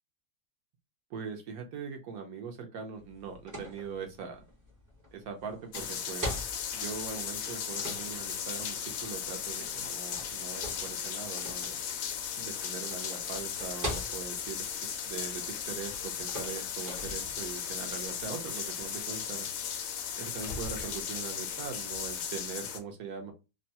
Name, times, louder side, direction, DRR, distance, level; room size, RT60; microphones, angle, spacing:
voice 1, 1.1-4.4 5.1-11.8 12.4-19.5 20.1-23.3, right 6 dB, 70° right, 4 dB, 1.0 m, -41 dB
sound 1, 3.0-17.5, equal, 20° right, 0.5 m, -44 dB
sound 2, 5.7-22.8, left 8 dB, 70° left, 0.8 m, -36 dB
sound 3, 16.6-21.7, left 2 dB, 90° left, 1.2 m, -47 dB
3.0 x 2.2 x 2.7 m, 0.27 s
omnidirectional pair, 1.7 m